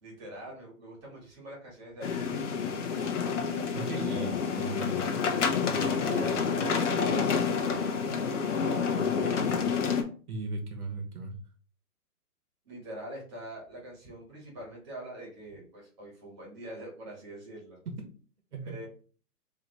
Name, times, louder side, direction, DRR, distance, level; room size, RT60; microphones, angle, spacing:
voice 1, 0.0-2.4 3.5-4.2 6.0-9.1 12.6-17.8 18.6-18.9, right 1 dB, 15° right, -4 dB, 1.4 m, -44 dB
sound 1, 2.0-10.0, left 6 dB, 50° left, 0.8 m, -28 dB
voice 2, 3.7-5.0 10.3-11.3 17.9-18.1 18.5-18.8, right 2 dB, 70° right, 4 dB, 1.3 m, -37 dB
3.3 x 2.9 x 4.0 m, 0.40 s
hypercardioid pair, 175°, 46 cm